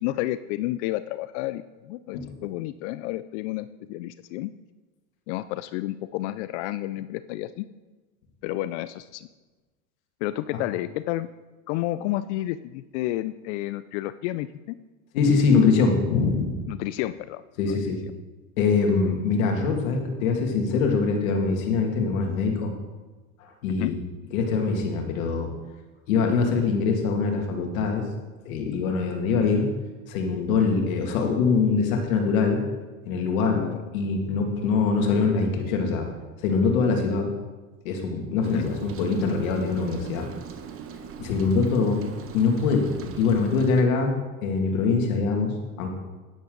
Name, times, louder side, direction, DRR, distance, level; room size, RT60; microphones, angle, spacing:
voice 1, 0.0-4.5 5.3-7.7 8.4-9.3 10.2-11.3 11.7-14.8 16.7-17.8 23.8-23.9 33.5-33.8 38.5-38.7, left 16 dB, 55° left, 14 dB, 0.5 m, -31 dB
voice 2, 15.1-16.6 17.6-18.0 18.6-22.7 23.4-23.9 24.3-25.5 26.1-28.1 28.5-29.7 30.1-32.6 33.1-33.6 33.9-36.1 36.4-37.3 37.8-40.3 41.2-42.0 42.3-44.1 44.4-45.9, left 4 dB, 70° left, 2 dB, 2.4 m, -23 dB
Rain, 38.4-43.8, right 7 dB, 30° right, 1.1 m, -40 dB
10.5 x 9.9 x 3.9 m, 1.2 s
hypercardioid pair, 110°, 42 cm